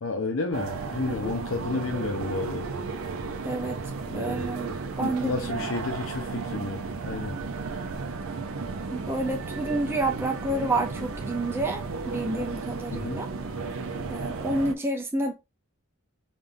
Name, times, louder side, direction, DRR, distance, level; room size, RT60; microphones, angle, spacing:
voice 1, 0.0-2.6 4.1-4.5 5.0-7.4 12.9-13.2, left 3 dB, 70° left, 0.6 m, -31 dB
sound 1, 0.5-14.7, right 4 dB, 75° right, 0.6 m, -34 dB
voice 2, 1.1-1.4 3.4-3.8 4.1-4.7 5.0-5.7 8.9-13.3 14.1-15.3, right 2 dB, 10° right, 0.5 m, -29 dB
5.2 x 2.4 x 2.5 m
head